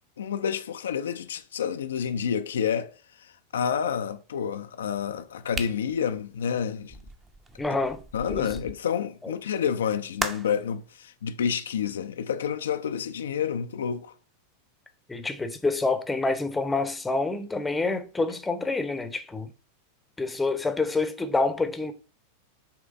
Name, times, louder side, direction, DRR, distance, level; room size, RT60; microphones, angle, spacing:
voice 1, 0.2-2.9 3.2-7.0 8.1-14.1, left 7 dB, 65° left, 0.5 m, -29 dB
sound 1, 5.5-8.8 10.2-10.6, right 3 dB, 20° right, 0.9 m, -37 dB
voice 2, 7.6-8.0 8.3-8.6 9.2-9.3 15.1-19.5 20.2-21.9, left 3 dB, 10° left, 0.8 m, -27 dB
7.1 x 3.3 x 5.0 m
figure-of-eight pair, 90°, 0 cm